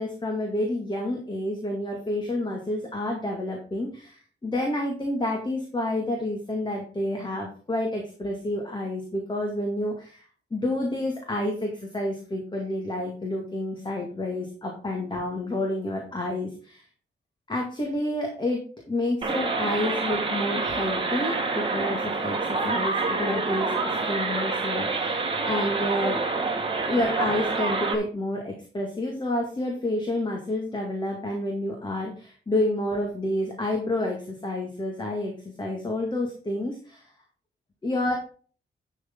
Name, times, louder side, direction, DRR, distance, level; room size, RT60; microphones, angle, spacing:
voice 1, 0.0-10.2 10.5-16.8 17.5-23.7 24.0-26.2 26.8-37.1 37.8-38.1, left 1 dB, 25° left, 1 dB, 2.1 m, -29 dB
sound 1, 19.2-28.0, right 3 dB, 25° right, 1.8 m, -27 dB
11.0 x 6.5 x 3.8 m, 0.40 s
wide cardioid pair, 145°, 20 cm